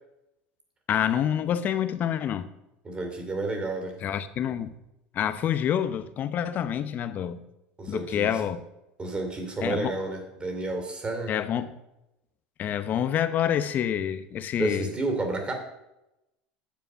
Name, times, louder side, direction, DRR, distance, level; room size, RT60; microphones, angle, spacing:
voice 1, 0.9-2.5 4.0-4.7 5.1-7.4 7.9-8.6 9.6-9.9 11.3-11.8 12.6-14.9, left 9 dB, 45° left, 0.8 m, -27 dB
voice 2, 2.8-4.0 7.8-8.4 9.0-11.3 14.6-15.5, right 2 dB, 25° right, 2.7 m, -31 dB
9.5 x 6.9 x 5.6 m
supercardioid pair, 105°, 4 cm